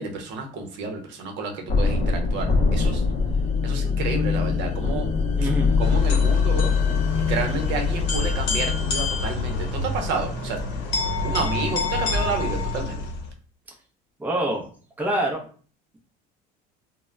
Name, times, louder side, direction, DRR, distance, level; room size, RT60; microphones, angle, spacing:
voice 1, 0.0-3.0 3.6-5.1 5.8-6.7 7.3-10.6 11.2-13.0, right 4 dB, 60° right, 4 dB, 0.7 m, -30 dB
sound 1, 1.7-10.5, left 5 dB, 35° left, 0.6 m, -23 dB
voice 2, 5.4-5.8 14.2-14.6 15.0-15.4, right 1 dB, 10° right, 0 dB, 0.5 m, -25 dB
sound 2, 5.8-13.3, left 3 dB, 70° left, 0.7 m, -28 dB
2.1 x 2.1 x 3.5 m, 0.42 s
cardioid pair, 125°, 21 cm